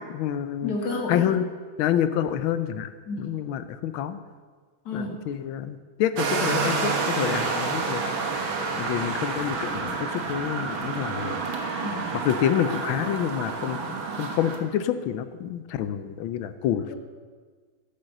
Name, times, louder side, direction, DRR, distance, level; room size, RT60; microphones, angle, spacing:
voice 1, 0.0-0.7 1.1-1.5 1.8-2.9 3.2-4.2 4.9-8.0 8.7-11.4 12.1-16.9, left 10 dB, 80° left, 12 dB, 1.5 m, -28 dB
voice 2, 0.6-1.3 3.1-3.3 4.9-5.2 11.8-12.1 16.9-17.0, left 2 dB, 50° left, 1 dB, 2.1 m, -31 dB
sound 1, 6.2-14.6, right 4 dB, 75° right, 2.1 m, -29 dB
11.5 x 7.8 x 6.5 m, 1.5 s
omnidirectional pair, 2.3 m